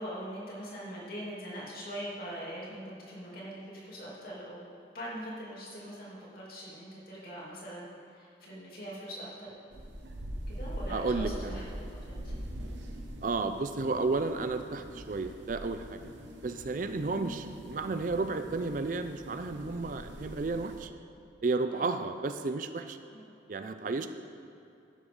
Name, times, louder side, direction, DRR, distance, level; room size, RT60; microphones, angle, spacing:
voice 1, 0.0-7.8 8.1-9.5 10.5-12.3 21.7-21.9 23.1-23.3 23.9-24.0, equal, 50° left, -6 dB, 2.9 m, -42 dB
sound 1, 9.7-20.8, equal, 80° right, 1.1 m, -42 dB
voice 2, 10.9-11.6 13.2-16.0 16.4-20.9 21.4-23.0 23.5-24.1, right 3 dB, 45° right, 9 dB, 0.4 m, -32 dB
12.0 x 10.0 x 3.8 m, 2.6 s
head